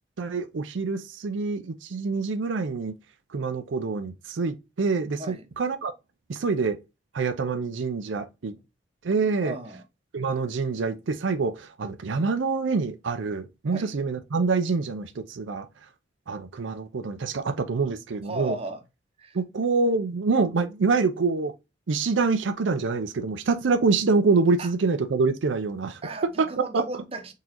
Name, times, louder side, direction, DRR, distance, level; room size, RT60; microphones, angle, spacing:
voice 1, 0.2-2.9 3.3-5.9 6.3-6.8 7.1-8.5 9.0-9.5 10.1-15.7 16.3-18.5 19.3-21.5 21.9-26.0 26.4-26.8, right 4 dB, 80° right, 0.5 m, -26 dB
voice 2, 9.4-9.8 13.7-13.9 18.2-18.8 19.2-19.4 24.6-24.7 26.0-27.3, right 1 dB, 30° right, 0.7 m, -36 dB
4.0 x 3.7 x 2.9 m
head